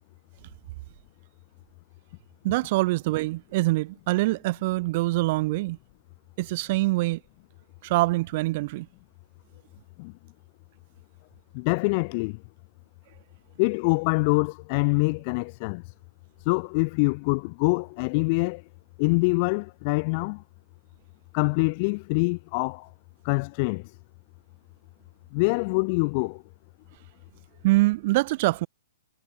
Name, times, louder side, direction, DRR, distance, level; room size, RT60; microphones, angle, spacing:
voice 1, 2.4-5.8 6.4-7.2 7.8-8.9 27.6-28.7, right 20 dB, 40° right, 0.7 m, -24 dB
voice 2, 11.5-12.4 13.6-15.9 16.4-18.6 19.0-20.4 21.3-22.9 23.2-23.9 25.3-26.4, left 30 dB, 40° left, 1.5 m, -25 dB
figure-of-eight pair, 120°, 0 cm